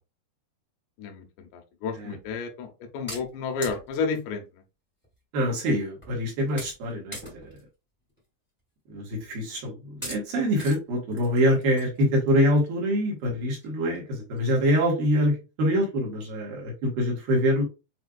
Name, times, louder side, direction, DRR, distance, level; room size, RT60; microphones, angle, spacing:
voice 1, 1.0-4.4, left 5 dB, 85° left, 3 dB, 3.0 m, -31 dB
sound 1, 2.2-2.4 3.1-4.2 5.0-5.1 5.5-5.6 6.0-6.2 6.6-6.8 7.1-7.6 8.1-8.2 9.1-9.3 10.0-10.2 10.6-10.8 11.1-12.7 13.2-13.3 13.6-13.7 13.9-14.0 14.4-14.7, equal, 5° left, 1.0 m, -41 dB
voice 2, 5.3-7.5 8.9-9.7 10.0-15.3 15.6-17.6, equal, 65° right, -3 dB, 2.8 m, -25 dB
7.4 x 2.5 x 2.3 m, 0.28 s
omnidirectional pair, 4.7 m